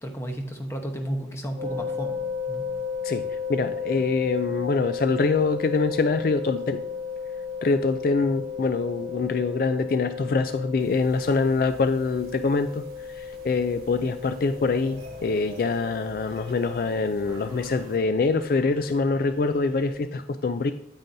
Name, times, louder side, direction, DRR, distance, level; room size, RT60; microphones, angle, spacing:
voice 1, 0.0-2.1 2.5-2.6, right 1 dB, 15° left, 3 dB, 0.9 m, -32 dB
sound 1, 1.6-20.0, left 6 dB, 85° left, 2.7 m, -35 dB
voice 2, 3.0-6.8 7.6-12.8 13.1-20.7, left 4 dB, 55° left, 10 dB, 0.3 m, -25 dB
sound 2, 10.8-18.0, right 1 dB, 55° right, 1.2 m, -47 dB
sound 3, 15.0-20.0, right 1 dB, 25° right, 1.8 m, -53 dB
9.0 x 8.9 x 2.7 m, 0.77 s
head